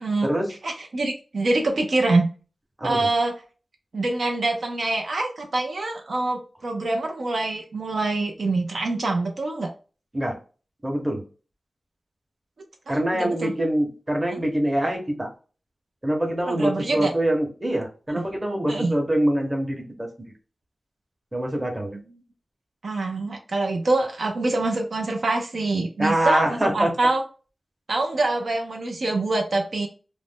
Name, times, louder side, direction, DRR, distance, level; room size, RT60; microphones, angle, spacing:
voice 1, 0.6-2.3 2.8-3.3 3.9-9.7 12.9-13.5 14.3-14.4 16.5-17.1 18.2-18.3 18.7-18.9 22.8-27.2 27.9-29.9, right 2 dB, 70° right, 3 dB, 0.5 m, -25 dB
voice 2, 10.8-11.2 12.9-15.3 16.0-20.1 21.3-22.0 26.0-26.9, right 1 dB, 20° right, 1 dB, 0.8 m, -24 dB
2.5 x 2.1 x 3.4 m, 0.35 s
wide cardioid pair, 105°, 0 cm